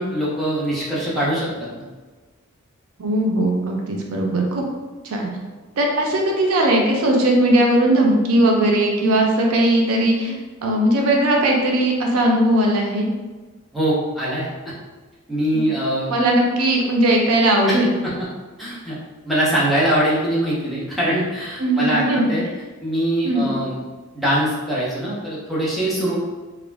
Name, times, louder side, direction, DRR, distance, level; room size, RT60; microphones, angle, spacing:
voice 1, 0.0-1.8 13.7-14.5 15.3-16.1 17.7-17.8 18.6-19.0 19.2-22.4 22.8-23.8 24.1-26.2, right 1 dB, ahead, -8 dB, 0.6 m, -22 dB
voice 2, 3.0-4.6 5.0-5.3 5.8-10.4 10.6-13.1 15.5-15.6 16.1-17.9 21.6-22.3 23.2-23.5, right 1 dB, 85° right, 0 dB, 0.5 m, -18 dB
2.4 x 2.0 x 3.2 m, 1.3 s
head